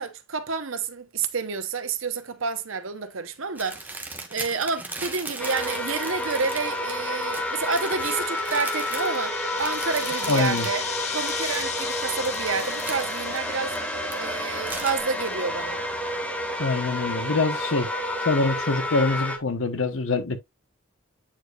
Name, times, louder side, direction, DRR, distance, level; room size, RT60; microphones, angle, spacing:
voice 1, 0.0-10.8 11.1-13.8 14.2-15.8, right 5 dB, 80° right, 1.0 m, -29 dB
sound 1, 3.6-14.1 14.5-15.0, right 2 dB, 10° right, 1.2 m, -38 dB
sound 2, 5.4-19.4, left 1 dB, 10° left, 1.4 m, -30 dB
sound 3, 6.1-15.6, left 7 dB, 35° left, 1.0 m, -37 dB
voice 2, 10.3-10.7 16.6-17.9 18.2-20.4, left 3 dB, 80° left, 1.1 m, -24 dB
8.9 x 4.9 x 2.4 m
head